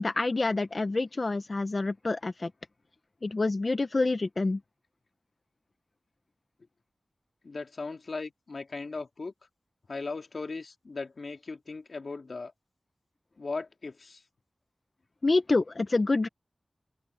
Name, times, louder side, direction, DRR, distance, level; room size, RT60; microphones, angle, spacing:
voice 1, 0.0-2.5 3.2-4.6 15.2-16.3, left 3 dB, 50° left, 0.9 m, -27 dB
voice 2, 7.4-9.3 9.9-12.5 13.4-14.2, left 3 dB, 70° left, 2.5 m, -38 dB
open air
wide cardioid pair, 75°, 0 cm